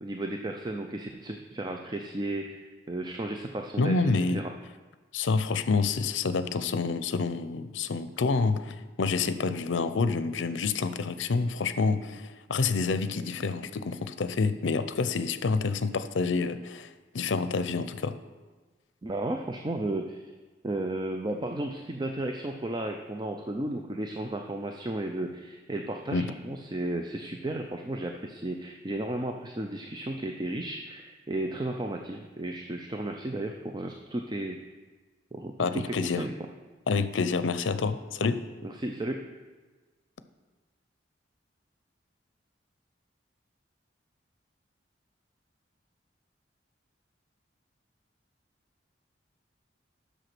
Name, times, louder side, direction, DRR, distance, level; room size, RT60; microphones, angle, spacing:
voice 1, 0.0-4.0 4.3-4.5 19.0-20.3 20.6-34.6 35.3-36.3 38.6-39.2, right 1 dB, 25° right, 3 dB, 0.5 m, -34 dB
voice 2, 3.8-4.4 5.1-18.2 26.1-26.3 35.6-36.3 36.9-38.5, left 4 dB, 80° left, 12 dB, 0.5 m, -28 dB
8.0 x 6.4 x 6.0 m, 1.3 s
head